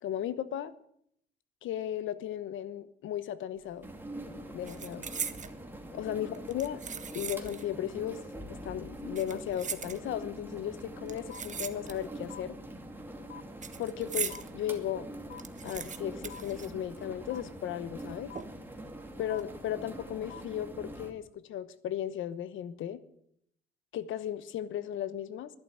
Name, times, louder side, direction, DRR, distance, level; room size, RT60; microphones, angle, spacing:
voice 1, 0.0-0.7 1.6-3.9 4.5-5.1 5.9-6.8 7.1-8.2 8.5-12.6 13.8-15.1 15.6-18.3 19.2-23.0 23.9-25.5, left 10 dB, 80° left, 15 dB, 1.1 m, -36 dB
sound 1, 3.6-3.9 4.2-5.6 6.3-7.7 8.0-8.1 9.0-10.4 11.1-12.3 12.5-14.5 14.9-15.0 15.2-17.3 17.6-17.7 18.4-18.8 19.2-19.4, right 6 dB, 40° right, 1.2 m, -40 dB
sound 2, 3.8-21.1, right 1 dB, 10° right, 2.6 m, -44 dB
sound 3, 11.3-11.4 12.3-12.4 13.3-13.4 14.3-14.4 15.3-15.4 16.3-16.4 17.3-17.4 18.3-18.4 19.3-19.4 20.3-20.4, left 9 dB, 55° left, 1.1 m, -45 dB
12.0 x 11.0 x 9.4 m, 0.71 s
cardioid pair, 90°, 20 cm